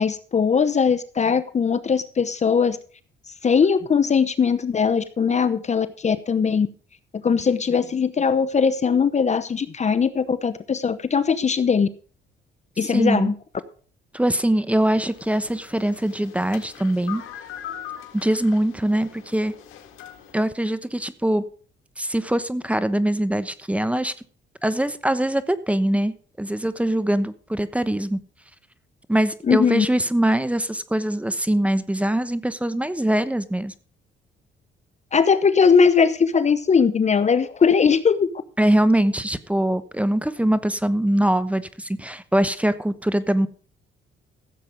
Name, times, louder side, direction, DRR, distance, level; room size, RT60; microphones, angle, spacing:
voice 1, 0.0-2.8 3.4-6.7 7.2-11.9 12.8-13.3 29.5-29.9 35.1-38.3, left 6 dB, 35° left, 13 dB, 0.8 m, -20 dB
voice 2, 12.9-13.3 14.1-17.2 18.1-19.5 20.3-21.4 22.0-24.1 24.6-28.2 29.1-33.7 38.6-43.5, right 1 dB, 5° right, 14 dB, 1.0 m, -22 dB
sound 1, 14.8-20.3, left 10 dB, 90° left, 1.9 m, -41 dB
15.0 x 7.6 x 5.1 m, 0.42 s
cardioid pair, 90°, 20 cm